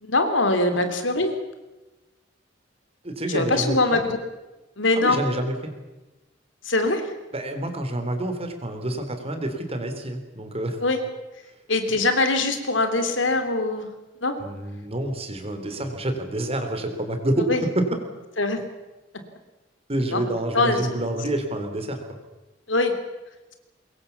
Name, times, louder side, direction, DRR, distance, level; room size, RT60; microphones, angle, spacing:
voice 1, 0.0-1.3 3.3-4.2 4.8-5.2 6.6-7.0 10.8-11.0 11.7-13.9 14.2-14.3 17.5-17.6 18.4-18.6 20.1-20.2 20.5-20.8 22.7-22.9, left 2 dB, 85° left, 7 dB, 3.2 m, -22 dB
voice 2, 3.0-4.0 5.0-5.5 7.3-10.8 14.4-17.9 19.9-22.0, right 1 dB, 35° right, 6 dB, 3.8 m, -28 dB
24.0 x 21.5 x 7.2 m, 1.1 s
head